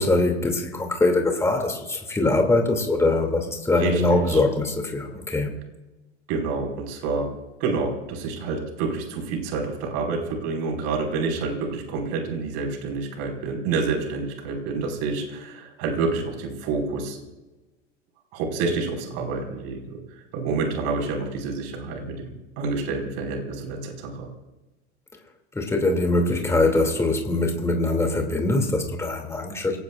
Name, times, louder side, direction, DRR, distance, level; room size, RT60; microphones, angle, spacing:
voice 1, 0.0-5.5 25.5-29.8, left 2 dB, 10° left, 2 dB, 2.7 m, -22 dB
voice 2, 3.8-4.4 6.3-7.3 7.6-17.2 18.3-20.0 20.3-24.3, right 4 dB, 50° right, 1 dB, 5.3 m, -28 dB
29.0 x 17.5 x 2.5 m, 1.1 s
hypercardioid pair, 95°, 33 cm